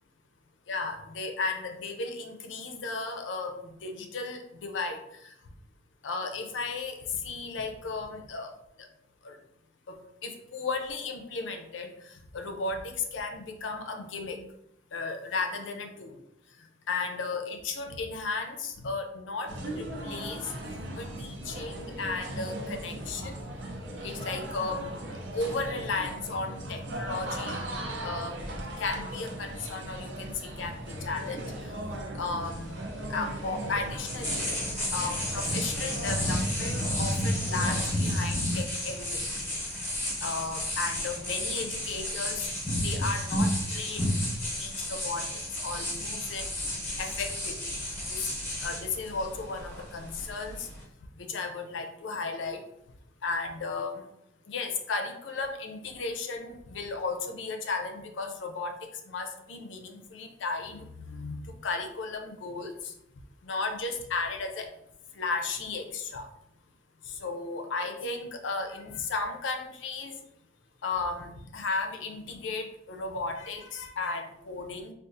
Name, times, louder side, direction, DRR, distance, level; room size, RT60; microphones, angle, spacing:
voice 1, 0.7-5.0 6.0-7.0 7.2-8.5 9.2-9.4 9.9-11.9 12.3-14.4 14.9-16.1 16.9-23.4 24.0-25.0 25.3-27.6 28.0-28.4 28.8-30.8 31.0-31.5 32.1-32.8 33.1-34.5 34.9-39.3 40.2-42.5 42.8-44.1 44.6-45.3 45.6-46.5 47.0-47.8 48.1-48.3 48.6-50.7 51.2-52.6 53.2-54.0 54.5-58.7 59.1-62.9 63.4-64.7 65.2-66.3 67.2-70.1 70.8-74.9, left 3 dB, 90° left, 5 dB, 0.5 m, -34 dB
sound 1, 19.5-37.9, right 1 dB, 70° right, 0.6 m, -38 dB
sound 2, 32.4-50.8, equal, 10° left, 0.9 m, -32 dB
3.6 x 2.4 x 2.6 m, 0.78 s
head